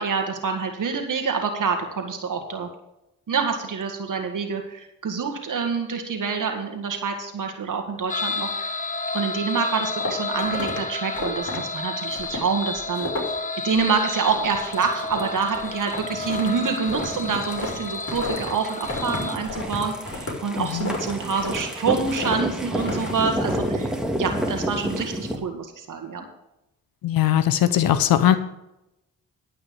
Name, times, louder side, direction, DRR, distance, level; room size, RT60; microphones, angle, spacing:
voice 1, 0.0-2.7 3.3-8.7 9.1-13.1 13.6-23.9 24.2-26.2, right 5 dB, 60° right, 4 dB, 1.8 m, -27 dB
sound 1, 8.1-19.3, left 3 dB, 20° left, 1.1 m, -31 dB
sound 2, 9.8-10.8 11.1-11.6 12.1-12.5 12.8-13.4 13.7-14.0 14.3-14.7 15.0-18.5 18.8-21.7 22.0-22.4 22.8-23.2, left 2 dB, 40° left, 4.8 m, -32 dB
sound 3, 14.5-25.4, equal, ahead, 2.1 m, -31 dB
voice 2, 20.6-20.9 27.0-28.4, left 11 dB, 80° left, 12 dB, 0.8 m, -20 dB
12.0 x 5.7 x 6.9 m, 0.88 s
supercardioid pair, 50°, 35 cm